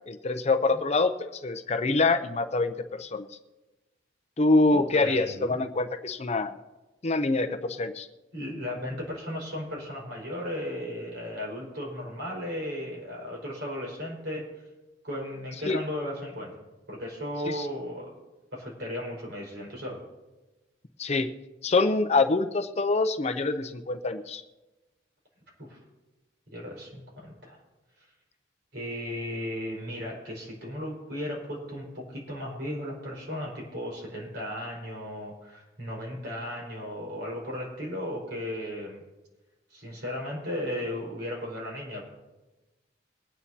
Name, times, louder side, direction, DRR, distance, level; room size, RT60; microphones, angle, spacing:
voice 1, 0.1-3.3 4.4-6.5 7.0-8.1 15.7-15.8 17.5-17.7 21.0-21.3 21.6-24.4, left 3 dB, 35° left, 8 dB, 0.6 m, -25 dB
voice 2, 4.7-5.6 8.3-14.7 15.0-16.5 16.9-18.2 18.5-20.0 25.6-25.8 26.5-27.6 28.7-39.0 39.7-42.0, left 1 dB, 60° right, -3 dB, 4.9 m, -35 dB
22.5 x 9.4 x 2.8 m, 1.1 s
head